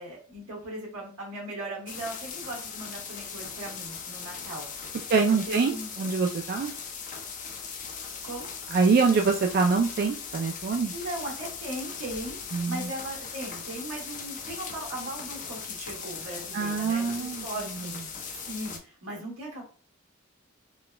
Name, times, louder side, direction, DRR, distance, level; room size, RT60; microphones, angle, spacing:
voice 1, 0.0-4.6 5.1-6.1 8.2-8.5 10.9-19.6, right 1 dB, 90° right, -4 dB, 1.6 m, -38 dB
sound 1, 1.9-18.8, left 6 dB, 40° left, 0.5 m, -39 dB
voice 2, 5.1-6.7 8.7-10.9 12.5-12.9 16.5-17.4, right 4 dB, 45° right, 3 dB, 0.3 m, -24 dB
4.1 x 2.2 x 2.2 m, 0.39 s
head